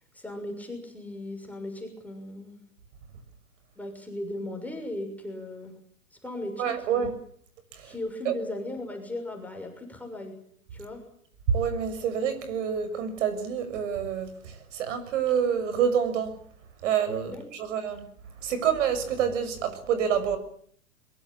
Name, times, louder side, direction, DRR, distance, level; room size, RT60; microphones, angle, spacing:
voice 1, 0.1-2.6 3.7-5.7 6.1-7.1 7.8-10.4 10.7-11.0 17.2-17.7, left 1 dB, 5° left, 3 dB, 6.5 m, -37 dB
voice 2, 6.6-7.1 7.7-7.9 8.2-8.3 11.5-16.4 16.8-18.1 18.4-20.4, right 8 dB, 55° right, 11 dB, 6.6 m, -27 dB
23.0 x 23.0 x 8.8 m, 0.63 s
figure-of-eight pair, 110°, 45 cm